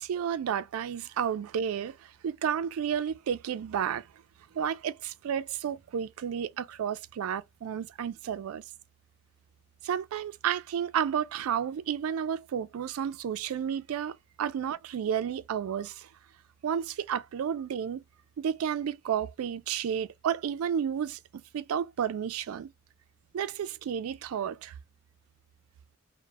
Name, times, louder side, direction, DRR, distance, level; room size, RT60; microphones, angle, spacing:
voice 1, 0.0-4.1 4.5-8.6 9.8-16.1 16.6-18.0 18.4-22.7 23.3-24.7, right 8 dB, 85° right, 0.3 m, -32 dB
2.1 x 2.0 x 3.2 m
head